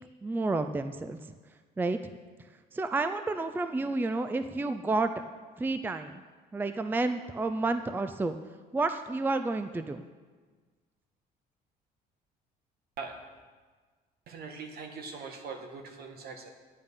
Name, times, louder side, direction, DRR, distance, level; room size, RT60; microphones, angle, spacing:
voice 1, 0.2-1.2 1.8-2.0 2.7-5.1 5.6-6.2 6.5-8.4 8.7-10.0, right 3 dB, 10° right, 9 dB, 0.5 m, -30 dB
voice 2, 14.3-16.5, right 4 dB, 65° right, 4 dB, 1.6 m, -41 dB
10.5 x 8.8 x 5.5 m, 1.4 s
cardioid pair, 110°, 17 cm